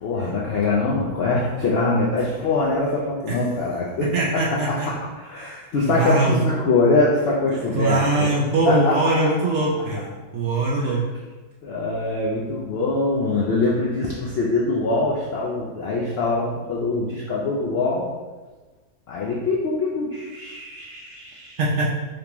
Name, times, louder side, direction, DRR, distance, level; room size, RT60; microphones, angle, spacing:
voice 1, 0.0-4.1 4.3-4.8 5.2-8.3 8.6-9.1 10.8-11.0 11.6-18.1 19.1-21.6, left 3 dB, 70° left, -4 dB, 0.5 m, -23 dB
voice 2, 4.1-4.9 5.4-6.5 7.7-10.1 10.3-11.0 21.6-21.9, right 2 dB, 65° right, -3 dB, 0.7 m, -22 dB
3.5 x 2.9 x 2.9 m, 1.2 s
omnidirectional pair, 1.6 m